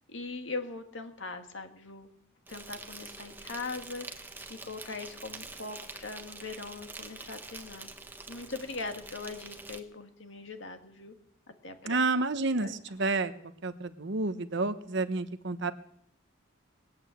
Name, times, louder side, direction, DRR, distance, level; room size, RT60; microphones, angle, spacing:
voice 1, 0.1-2.1 2.5-7.9 8.3-11.1 11.6-12.0 12.6-12.7, left 3 dB, 60° left, 6 dB, 1.9 m, -41 dB
Insect, 2.5-9.8, right 3 dB, 10° right, 1.1 m, -46 dB
voice 2, 11.9-13.3 13.6-15.7, right 3 dB, 60° right, 11 dB, 0.9 m, -30 dB
20.0 x 8.7 x 7.8 m, 0.70 s
head